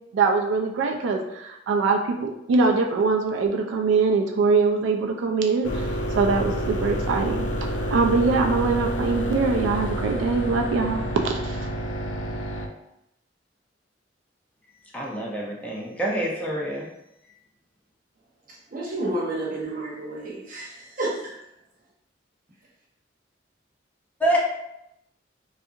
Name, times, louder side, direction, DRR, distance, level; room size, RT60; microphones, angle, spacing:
voice 1, 0.1-5.9 6.2-7.5 7.9-11.7, right 4 dB, 85° right, 2 dB, 0.3 m, -23 dB
sound 1, 5.6-12.7, equal, 85° left, 0.4 m, -28 dB
voice 2, 14.9-16.9 24.2-24.4, right 1 dB, 10° left, -4 dB, 0.5 m, -26 dB
voice 3, 18.7-21.3, right 1 dB, 50° right, -4 dB, 0.8 m, -30 dB
2.7 x 2.4 x 2.4 m, 0.83 s
head